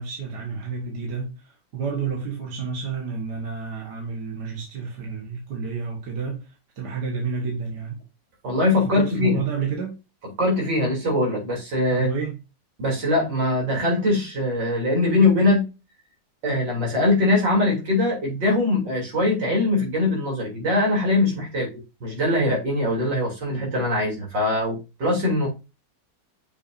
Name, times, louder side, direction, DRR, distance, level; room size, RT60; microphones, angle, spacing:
voice 1, 0.0-8.0 8.8-10.0 11.9-12.4, right 5 dB, 65° right, 2.1 m, -30 dB
voice 2, 8.4-9.4 10.4-12.1 12.8-15.7 16.4-25.5, left 2 dB, 85° right, 3.9 m, -22 dB
7.0 x 6.2 x 2.6 m
omnidirectional pair, 1.9 m